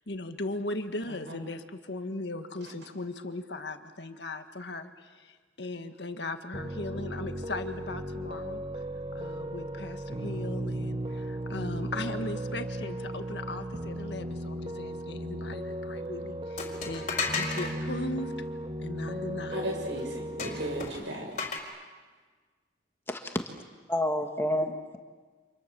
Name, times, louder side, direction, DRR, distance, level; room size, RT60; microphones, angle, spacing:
voice 1, 0.1-8.8 9.1-17.1 17.3-18.5 18.8-19.6, left 2 dB, 65° left, 7 dB, 1.8 m, -38 dB
voice 2, 1.1-1.4 2.6-2.7 19.5-21.4, equal, 75° right, 2 dB, 6.8 m, -36 dB
Piano, 6.5-20.9, right 1 dB, 30° right, 1.0 m, -36 dB
sound 1, 16.6-17.7 20.4-21.6, left 4 dB, 40° left, 4.5 m, -33 dB
voice 3, 23.1-23.4 23.9-25.0, left 1 dB, 15° left, 4 dB, 1.6 m, -29 dB
30.0 x 27.5 x 7.1 m, 1.5 s
head